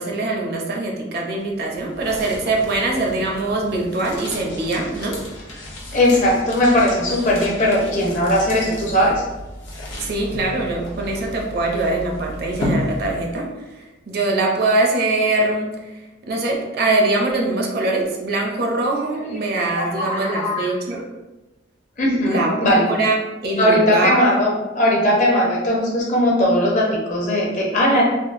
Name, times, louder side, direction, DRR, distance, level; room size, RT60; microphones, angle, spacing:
voice 1, 0.0-5.2 10.0-21.1 22.2-24.3, right 2 dB, 55° right, 0 dB, 0.5 m, -23 dB
sound 1, 1.4-13.5, left 1 dB, 75° left, 0.7 m, -33 dB
voice 2, 5.9-9.2 19.7-20.7 22.0-22.9 23.6-28.0, left 1 dB, 40° left, -3 dB, 0.6 m, -18 dB
3.6 x 2.0 x 2.5 m, 1.1 s
head